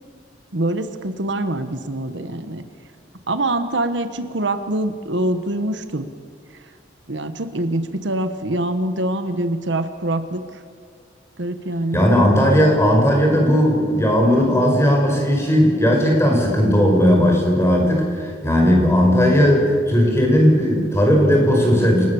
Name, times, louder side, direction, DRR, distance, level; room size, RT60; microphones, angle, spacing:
voice 1, 0.5-2.6 3.3-6.1 7.1-10.6 11.4-12.1, right 1 dB, 70° right, 10 dB, 1.3 m, -24 dB
voice 2, 11.9-22.1, equal, 15° left, 0 dB, 5.4 m, -16 dB
28.0 x 19.0 x 7.1 m, 2.3 s
head